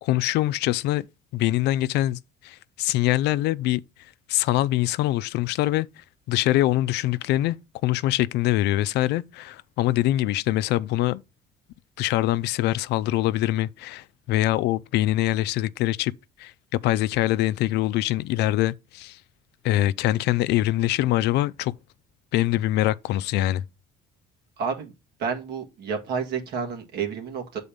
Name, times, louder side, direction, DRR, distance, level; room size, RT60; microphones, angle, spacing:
voice 1, 0.0-1.1 1.3-3.8 4.3-7.6 7.8-11.2 12.0-16.1 16.4-16.5 16.8-19.2 19.6-21.7 22.3-23.6, left 15 dB, 80° left, 0.4 m, -24 dB
voice 2, 24.6-24.9 25.2-27.6, right 6 dB, 75° right, 1.8 m, -30 dB
7.1 x 4.2 x 5.1 m
cardioid pair, 110°, 17 cm